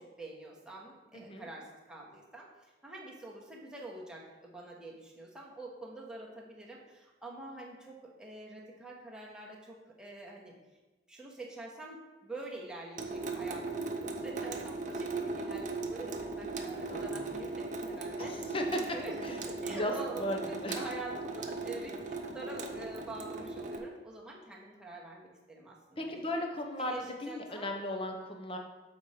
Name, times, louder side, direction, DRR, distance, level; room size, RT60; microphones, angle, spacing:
voice 1, 0.0-10.5 11.1-26.2 26.8-27.7, right 2 dB, 5° right, -3 dB, 1.1 m, -46 dB
voice 2, 1.1-1.5 16.9-17.3 18.2-19.0 19.2-19.4 19.7-19.9 20.2-20.8 26.0-26.9 27.2-28.6, left 1 dB, 30° left, 3 dB, 0.8 m, -36 dB
Water tap faucet / Sink (filling or washing) / Drip, 13.0-23.8, right 3 dB, 40° right, 0.6 m, -38 dB
7.3 x 4.2 x 4.9 m, 1.2 s
head